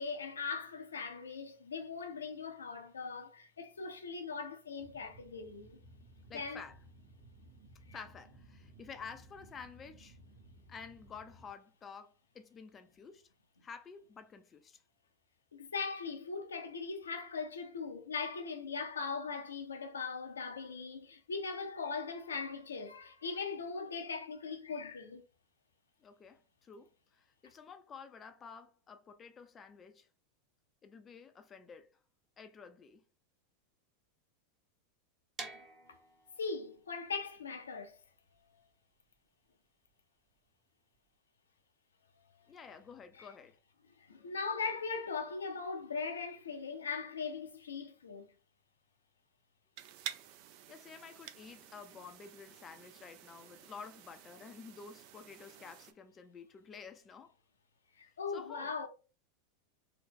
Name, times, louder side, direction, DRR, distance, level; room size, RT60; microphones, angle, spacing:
voice 1, 0.0-5.8 6.3-6.6 15.5-25.2 35.9-36.0 36.4-38.0 43.2-43.3 44.0-48.3 58.0-58.9, left 4 dB, 80° left, 0.5 m, -40 dB
sound 1, 4.8-11.5, right 1 dB, 75° right, 1.1 m, -58 dB
voice 2, 6.3-6.8 7.9-10.2 10.7-13.3 13.6-14.8 26.0-30.1 30.8-32.0 32.4-33.0 42.5-43.6 50.7-57.3 58.3-58.8, left 5 dB, 25° left, 0.4 m, -51 dB
sound 2, 35.3-41.2, right 3 dB, 25° right, 1.0 m, -51 dB
sound 3, 49.8-55.9, right 10 dB, 50° right, 0.4 m, -50 dB
2.9 x 2.1 x 3.5 m
figure-of-eight pair, 90°, 0 cm